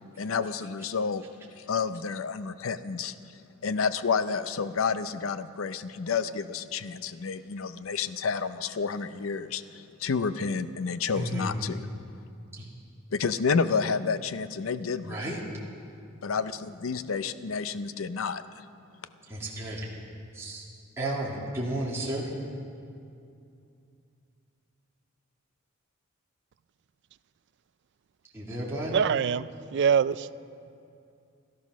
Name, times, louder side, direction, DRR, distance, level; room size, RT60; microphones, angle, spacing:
voice 1, 0.2-1.2 1.6-3.1 3.6-11.9 13.1-15.4 16.2-18.6, left 5 dB, 70° left, 13 dB, 0.5 m, -30 dB
voice 2, 11.1-11.6 12.5-12.7 15.0-15.4 19.3-19.9 20.3-20.6 21.0-22.3 28.3-29.0, right 1 dB, 10° right, -6 dB, 2.3 m, -33 dB
voice 3, 28.9-30.5, right 7 dB, 55° right, 16 dB, 0.4 m, -25 dB
16.5 x 13.5 x 6.2 m, 2.5 s
head